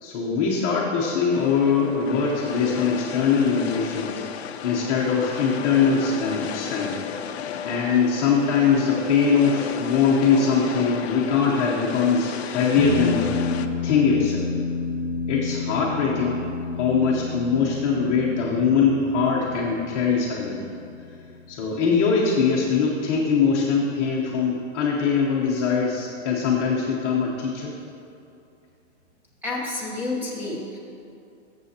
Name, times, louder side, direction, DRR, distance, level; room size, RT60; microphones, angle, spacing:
voice 1, 0.0-4.2 4.6-7.0 7.6-13.4 13.8-14.5 15.3-16.4 16.8-20.6 21.5-27.7, left 5 dB, 25° left, -5 dB, 0.8 m, -22 dB
sound 1, 1.3-13.7, left 8 dB, 60° left, 0.5 m, -34 dB
sound 2, 12.8-23.5, left 4 dB, 35° right, 1.9 m, -31 dB
voice 2, 29.4-30.8, left 2 dB, 5° right, -5 dB, 0.8 m, -29 dB
14.0 x 7.0 x 2.8 m, 2.6 s
hypercardioid pair, 165°, 38 cm